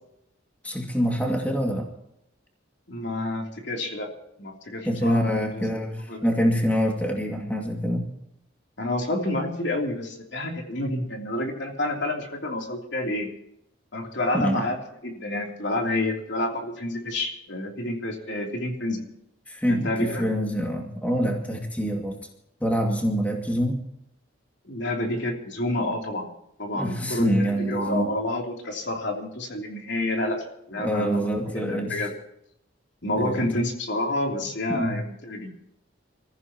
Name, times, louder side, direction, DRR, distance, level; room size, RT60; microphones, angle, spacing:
voice 1, 0.6-1.9 4.8-8.1 14.3-14.7 19.5-22.2 22.6-23.8 26.7-28.1 30.8-32.0 33.2-33.5 34.7-35.0, equal, 5° left, 1 dB, 2.2 m, -25 dB
voice 2, 2.9-4.1 4.4-5.6 6.1-6.3 8.8-13.3 13.9-14.8 15.0-19.0 19.7-20.3 24.6-26.3 26.6-31.2 31.5-32.1 33.0-35.5, left 1 dB, 60° left, 1 dB, 3.2 m, -29 dB
27.5 x 15.0 x 3.0 m, 0.79 s
head